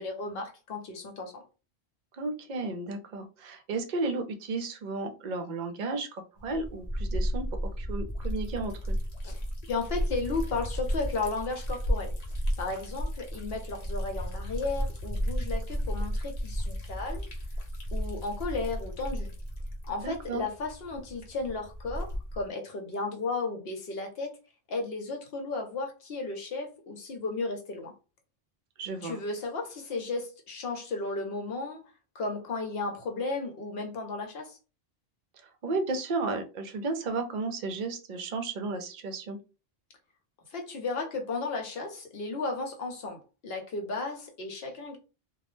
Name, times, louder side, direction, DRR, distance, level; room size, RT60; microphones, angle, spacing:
voice 1, 0.0-1.4 9.2-9.4 9.7-12.1 12.6-17.3 17.9-19.3 19.9-24.4 24.7-27.9 29.0-31.8 32.1-34.6 40.5-45.0, left 3 dB, 70° left, 0.9 m, -34 dB
voice 2, 2.2-9.0 20.0-20.4 28.8-29.2 35.4-39.4, right 3 dB, 55° right, 0.6 m, -33 dB
Liquid, 6.4-22.5, equal, 45° left, 0.7 m, -33 dB
2.2 x 2.0 x 3.0 m
omnidirectional pair, 1.1 m